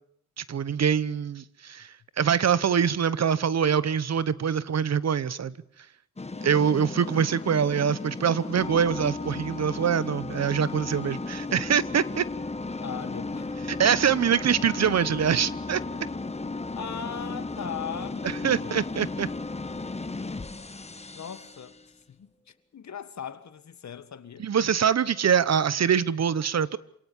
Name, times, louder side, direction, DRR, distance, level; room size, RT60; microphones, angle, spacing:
voice 1, 0.4-1.9 2.2-5.5 6.4-12.2 13.8-15.8 18.4-19.3 24.4-26.8, right 7 dB, 60° right, 1.0 m, -24 dB
sound 1, 6.2-21.8, left 3 dB, 20° left, 1.3 m, -35 dB
voice 2, 6.3-6.8 12.8-13.5 16.7-18.8 21.1-24.8, left 8 dB, 65° left, 1.8 m, -39 dB
27.5 x 18.0 x 7.2 m
cardioid pair, 75°, 30 cm